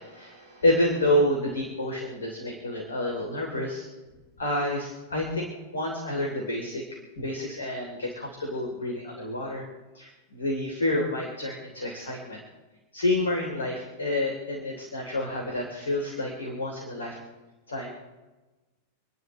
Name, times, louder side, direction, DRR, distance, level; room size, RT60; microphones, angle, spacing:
voice 1, 0.0-3.9 4.4-6.8 7.2-9.7 9.9-12.4 12.9-17.2 17.7-18.0, left 1 dB, 70° left, 0 dB, 3.5 m, -29 dB
28.5 x 11.0 x 3.3 m, 1.2 s
figure-of-eight pair, 90°, 0 cm